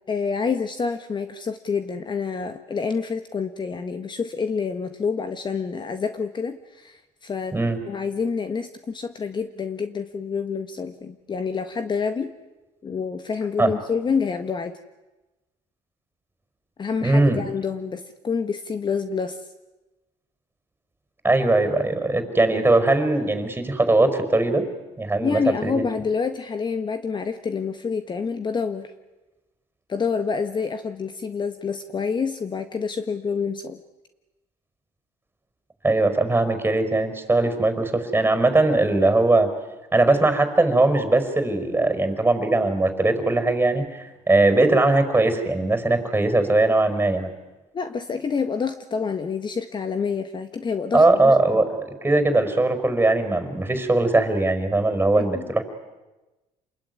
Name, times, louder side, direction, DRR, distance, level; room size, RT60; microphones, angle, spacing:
voice 1, 0.1-7.5 7.8-12.3 12.8-14.8 16.8-19.4 25.2-28.9 29.9-33.8 47.7-51.6 55.1-55.5, left 5 dB, 35° left, 9 dB, 1.5 m, -27 dB
voice 2, 17.0-17.4 21.2-24.7 25.0-25.8 35.8-39.5 39.9-47.3 50.9-55.6, right 2 dB, 15° right, 8 dB, 5.3 m, -20 dB
28.0 x 21.0 x 9.6 m, 1.1 s
cardioid pair, 95°, 14 cm